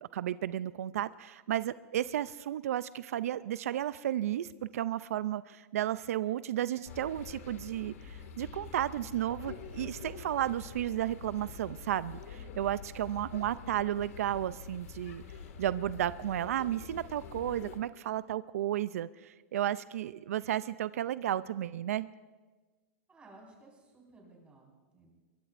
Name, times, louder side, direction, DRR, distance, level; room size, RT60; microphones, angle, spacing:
voice 1, 0.0-15.2 15.6-22.1, right 12 dB, 85° right, 16 dB, 0.4 m, -33 dB
sound 1, 6.8-17.8, left 6 dB, 80° left, 1.9 m, -46 dB
voice 2, 23.1-25.1, right 2 dB, 15° right, -2 dB, 4.7 m, -57 dB
23.5 x 22.5 x 2.5 m, 1.3 s
supercardioid pair, 150°, 8 cm